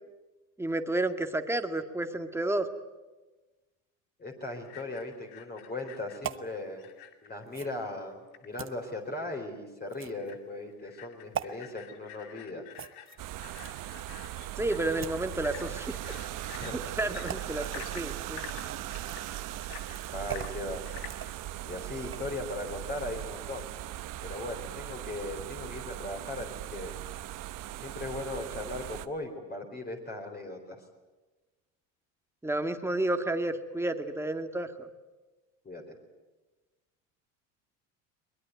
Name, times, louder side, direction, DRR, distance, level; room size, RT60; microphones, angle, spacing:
voice 1, 0.6-2.7 14.6-16.0 17.0-18.5 32.4-34.9, right 2 dB, 5° right, 7 dB, 2.0 m, -31 dB
voice 2, 4.2-6.9 7.2-12.7 16.6-16.9 18.9-19.0 20.1-20.8 21.7-23.7 24.2-26.9 27.8-30.8 35.6-36.0, left 2 dB, 25° left, 2 dB, 4.3 m, -38 dB
sound 1, 4.6-7.4 7.7-7.8 8.1-8.5 8.9-9.0 9.4-9.5 10.0-10.4 10.7-21.3, left 11 dB, 70° left, 2.5 m, -49 dB
sound 2, 6.2-6.5 7.5-7.8 8.6-8.7 9.9-10.3 11.3-11.5 12.7-13.9 14.6-15.3 16.3-16.4 16.8-17.0 17.3-17.8 18.1-22.4 22.8-22.9, right 9 dB, 30° right, 1.1 m, -41 dB
sound 3, 13.2-29.1, right 14 dB, 55° right, 1.2 m, -39 dB
22.5 x 20.5 x 9.4 m, 1.2 s
supercardioid pair, 95°, 39 cm